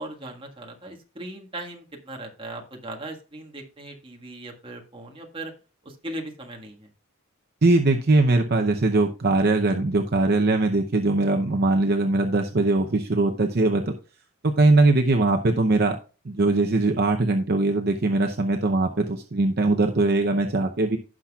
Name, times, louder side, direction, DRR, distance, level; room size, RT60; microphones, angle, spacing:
voice 1, 0.0-5.5 5.8-6.9, right 1 dB, 25° right, 1 dB, 1.6 m, -38 dB
voice 2, 7.6-13.9 14.4-16.0 16.2-21.0, right 2 dB, 45° right, 5 dB, 0.7 m, -21 dB
16.0 x 5.9 x 2.3 m, 0.34 s
head